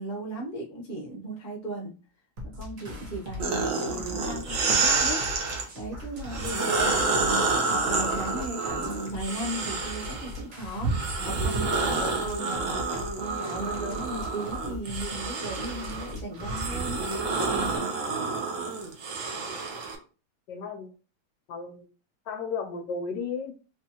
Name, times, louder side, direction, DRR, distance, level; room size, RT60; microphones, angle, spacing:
voice 1, 0.0-2.0 2.4-5.3 5.7-17.0 17.5-17.9, right 1 dB, 55° left, -1 dB, 0.5 m, -37 dB
sound 1, 2.4-17.8, left 1 dB, 45° right, 1.3 m, -41 dB
sound 2, 3.4-5.7 6.2-10.3 10.8-20.0, right 3 dB, 75° right, 0.7 m, -28 dB
voice 2, 20.5-20.9 21.5-21.8 22.3-23.5, left 5 dB, 70° left, 4 dB, 1.0 m, -34 dB
3.4 x 3.2 x 2.8 m, 0.34 s
omnidirectional pair, 2.4 m